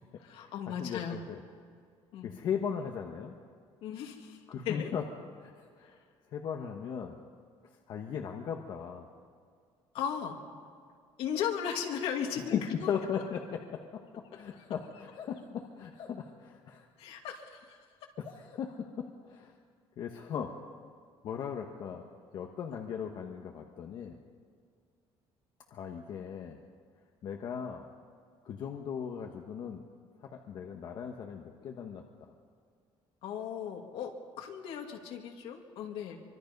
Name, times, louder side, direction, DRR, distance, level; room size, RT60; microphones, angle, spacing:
voice 1, 0.2-1.2 2.1-2.3 3.8-4.4 4.7-4.9 9.9-10.4 11.2-12.9 17.0-17.8 33.2-34.1 34.4-36.2, left 8 dB, 70° left, 3 dB, 2.6 m, -36 dB
voice 2, 0.8-1.4 2.2-3.3 4.5-5.0 5.4-6.0 6.3-7.2 7.9-9.1 12.5-14.0 14.3-16.9 18.2-19.5 20.0-20.5 21.2-22.0 22.3-24.2 25.7-26.6 27.2-27.8 28.4-29.8 30.2-32.3, left 7 dB, 50° left, 2 dB, 1.3 m, -37 dB
25.0 x 23.5 x 5.4 m, 2.1 s
cardioid pair, 175°, 10 cm